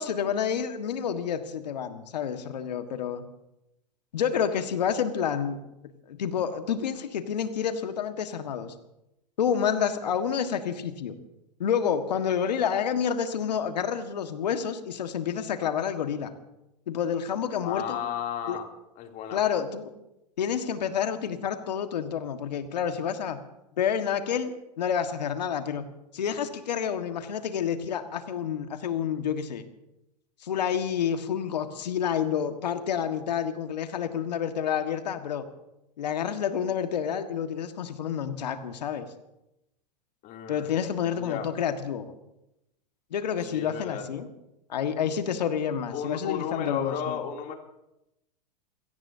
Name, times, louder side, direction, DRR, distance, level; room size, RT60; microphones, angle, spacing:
voice 1, 0.0-3.2 4.1-5.6 6.1-8.7 9.4-11.2 11.6-16.3 16.9-18.0 18.5-18.6 19.3-19.9 20.4-23.4 23.8-25.9 26.1-29.6 30.4-35.4 36.0-39.1 40.5-42.1 43.1-44.3 44.7-47.2, left 8 dB, 80° left, 7 dB, 1.7 m, -29 dB
voice 2, 17.6-18.7 19.0-19.4 40.2-40.8 41.1-41.5 43.4-44.1 45.9-47.5, left 8 dB, 40° left, 2 dB, 3.1 m, -34 dB
28.0 x 17.5 x 2.8 m, 0.87 s
hypercardioid pair, 110°, 21 cm